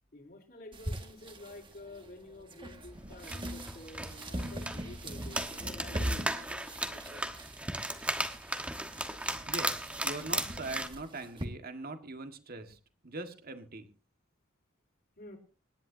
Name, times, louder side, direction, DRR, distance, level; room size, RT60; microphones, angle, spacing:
voice 1, 0.1-7.3 15.2-15.4, left 2 dB, 50° left, 4 dB, 4.1 m, -50 dB
sound 1, 0.7-11.5, right 1 dB, 25° right, 1.9 m, -42 dB
sound 2, 3.0-10.9, right 1 dB, 5° right, 1.3 m, -36 dB
voice 2, 9.5-13.9, right 2 dB, 45° right, 7 dB, 1.8 m, -42 dB
26.5 x 11.0 x 2.8 m, 0.35 s
head